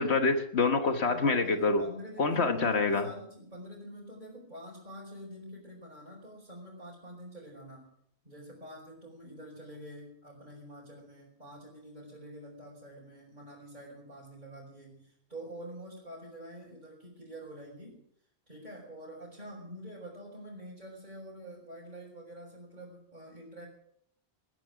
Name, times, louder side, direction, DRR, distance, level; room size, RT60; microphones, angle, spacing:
voice 1, 0.0-1.8 2.2-3.1, left 3 dB, 80° left, 6 dB, 1.6 m, -26 dB
voice 2, 1.0-7.9 8.2-18.0 18.5-23.7, right 1 dB, 45° right, -6 dB, 5.5 m, -46 dB
21.0 x 13.0 x 5.0 m, 0.70 s
omnidirectional pair, 1.1 m